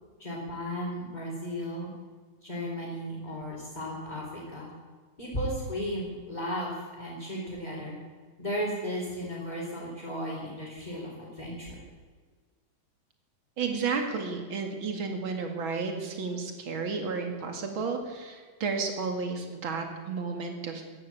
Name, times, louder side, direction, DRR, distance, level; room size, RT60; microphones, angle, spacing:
voice 1, 0.2-1.9 2.4-4.7 5.2-6.7 7.0-8.0 8.4-11.1 11.4-11.8, equal, 10° left, -7 dB, 4.0 m, -35 dB
voice 2, 13.6-20.8, right 4 dB, 45° right, 4 dB, 2.4 m, -32 dB
15.0 x 11.0 x 8.7 m, 1.5 s
omnidirectional pair, 3.7 m